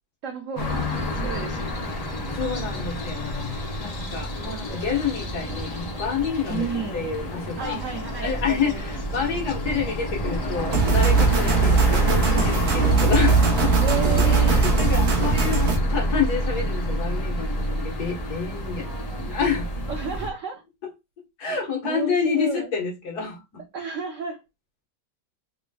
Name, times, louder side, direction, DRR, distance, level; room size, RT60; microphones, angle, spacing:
voice 1, 0.2-2.0 6.5-7.0 7.6-8.9 11.4-11.8 13.8-14.6 18.8-19.3 19.9-20.6 21.8-22.7 23.7-24.4, right 5 dB, 80° right, 0.7 m, -32 dB
sound 1, 0.6-20.3, equal, 75° left, 0.3 m, -27 dB
voice 2, 2.3-3.3 3.8-6.7 6.9-7.8 8.2-13.8 14.2-18.9 19.2-19.7 21.4-23.6, left 6 dB, 55° left, 1.6 m, -28 dB
sound 2, 10.7-15.8, right 5 dB, 60° right, 1.1 m, -21 dB
4.0 x 3.2 x 2.2 m
omnidirectional pair, 2.1 m